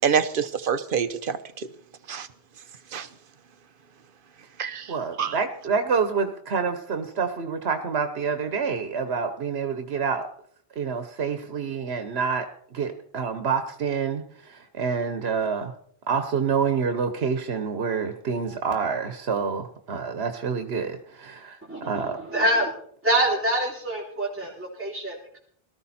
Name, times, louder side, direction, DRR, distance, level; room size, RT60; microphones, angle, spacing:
voice 1, 0.0-1.4 2.1-2.3 2.9-3.1 4.6-4.8 5.2-5.3, right 7 dB, 60° right, 12 dB, 1.0 m, -25 dB
voice 2, 4.9-10.3 10.8-12.5 12.7-15.7 16.1-21.6 21.9-22.2, right 5 dB, 90° right, 8 dB, 1.3 m, -27 dB
voice 3, 21.7-22.7 23.0-25.4, right 1 dB, 10° right, -5 dB, 3.1 m, -25 dB
18.5 x 13.5 x 4.3 m, 0.62 s
omnidirectional pair, 1.0 m